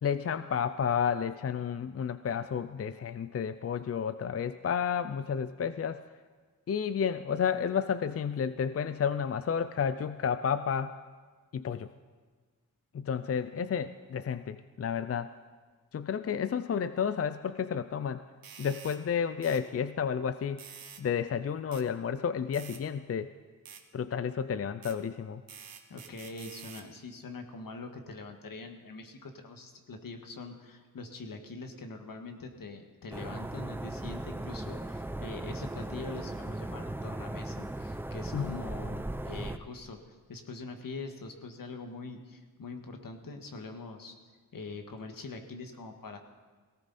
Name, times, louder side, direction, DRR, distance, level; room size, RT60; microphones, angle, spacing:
voice 1, 0.0-6.0 6.7-11.0 11.5-11.9 12.9-15.3 15.9-18.2 18.6-20.6 21.0-23.3 23.9-25.4 38.3-38.6, left 7 dB, 45° left, 12 dB, 0.5 m, -31 dB
sound 1, 18.4-19.0 19.4-19.6 20.6-21.0 21.7-21.9 22.5-22.8 23.7-23.8 24.8-25.0 25.5-26.9, right 7 dB, 90° right, 1.2 m, -48 dB
voice 2, 25.9-44.1 44.5-46.2, left 3 dB, 75° left, 5 dB, 1.7 m, -43 dB
sound 2, 33.1-39.6, right 1 dB, 5° right, 0.6 m, -37 dB
18.0 x 17.5 x 4.2 m, 1.4 s
wide cardioid pair, 105°, 34 cm